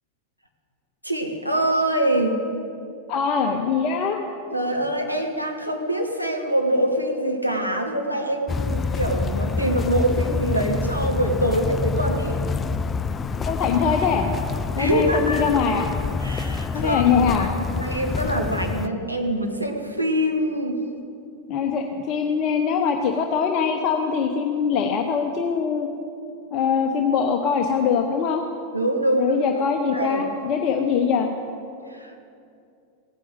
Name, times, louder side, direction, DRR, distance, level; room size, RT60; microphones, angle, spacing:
voice 1, 1.0-2.4 4.5-12.4 14.8-15.4 16.2-17.1 17.4-17.5 17.7-20.8 28.7-29.6 29.9-30.2 31.9-32.1, right 1 dB, 90° right, 2 dB, 1.7 m, -24 dB
voice 2, 3.1-4.2 13.5-14.3 14.8-15.9 16.7-17.5 21.5-25.9 26.5-28.4 29.1-31.3, left 6 dB, 40° left, 3 dB, 1.0 m, -22 dB
sound 1, 8.5-18.9, left 4 dB, 20° left, 0.4 m, -27 dB
16.5 x 9.7 x 8.0 m, 2.5 s
figure-of-eight pair, 90°, 0 cm